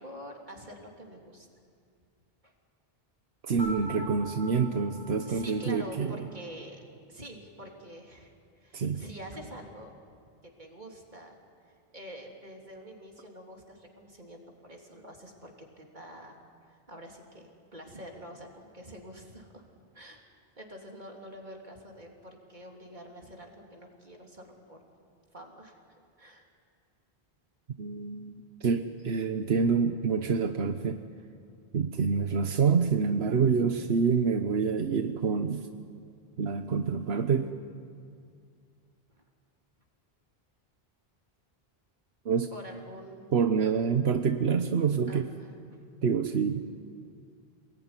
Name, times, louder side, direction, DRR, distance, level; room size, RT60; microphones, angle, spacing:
voice 1, 0.0-1.5 2.4-2.5 5.3-6.8 7.1-9.9 10.4-11.3 11.9-16.4 16.7-19.6 19.9-20.2 20.6-24.8 25.3-25.8 26.2-26.5 42.5-43.4 45.1-45.3, equal, 50° right, 0 dB, 3.6 m, -46 dB
voice 2, 3.4-6.3 8.7-9.0 27.8-31.0 31.7-35.7 36.4-37.5 42.2-42.5 43.3-45.3 46.0-46.7, right 5 dB, 85° right, 7 dB, 1.3 m, -27 dB
sound 1, 3.6-6.5, right 1 dB, 70° right, 5.7 m, -43 dB
28.5 x 21.0 x 9.8 m, 2.3 s
omnidirectional pair, 1.0 m